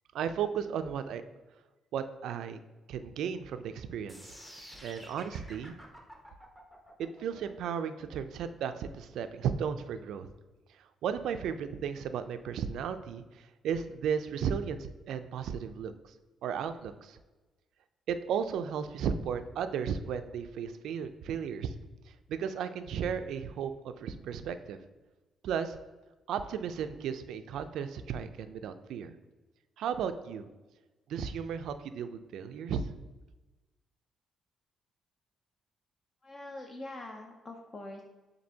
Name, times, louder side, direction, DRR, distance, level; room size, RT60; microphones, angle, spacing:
voice 1, 0.1-1.2 1.9-2.6 2.9-4.4 4.8-5.8 7.0-10.3 10.7-16.1 16.4-17.2 18.1-21.7 22.1-24.8 25.4-25.8 26.3-29.1 29.8-30.5 31.1-32.9, right 7 dB, 80° right, 10 dB, 0.3 m, -35 dB
sound 1, 4.1-10.1, equal, 10° left, 0.9 m, -51 dB
voice 2, 36.2-38.0, left 2 dB, 35° left, 2 dB, 0.5 m, -44 dB
7.3 x 2.6 x 2.7 m, 1.2 s
cardioid pair, 90°, 0 cm